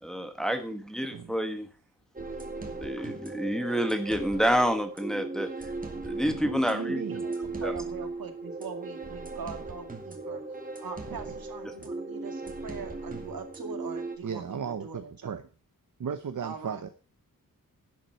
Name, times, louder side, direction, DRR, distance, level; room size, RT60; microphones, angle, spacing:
voice 1, 0.0-1.7 2.7-5.5 6.0-7.0 7.6-7.7 11.6-11.8, equal, ahead, 6 dB, 1.2 m, -28 dB
sound 1, 2.1-14.2, right 3 dB, 25° right, 2.0 m, -37 dB
voice 2, 6.4-7.2 11.3-11.4 14.2-15.4 16.0-16.9, right 6 dB, 60° right, 8 dB, 0.9 m, -36 dB
voice 3, 7.1-10.4 10.8-15.4 16.4-16.9, right 5 dB, 90° right, 6 dB, 2.2 m, -42 dB
10.5 x 7.5 x 6.6 m, 0.37 s
wide cardioid pair, 180°, 34 cm